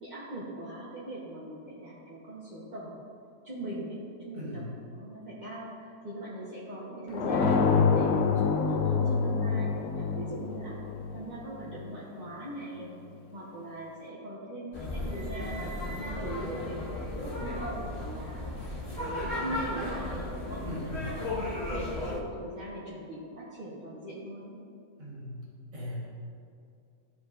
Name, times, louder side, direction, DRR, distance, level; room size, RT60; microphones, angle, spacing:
voice 1, 0.0-3.0 3.4-7.6 7.9-10.8 11.1-12.9 13.3-18.4 18.9-24.5, right 1 dB, 30° right, -8 dB, 1.0 m, -41 dB
voice 2, 4.3-4.8 20.7-21.1 25.0-25.5 25.7-26.0, left 1 dB, 90° right, -5 dB, 2.3 m, -38 dB
sound 1, 7.1-11.9, left 5 dB, 85° left, 1.2 m, -26 dB
sound 2, 14.7-22.2, left 1 dB, 40° left, 1.5 m, -35 dB
13.5 x 4.9 x 2.5 m, 2.5 s
omnidirectional pair, 1.8 m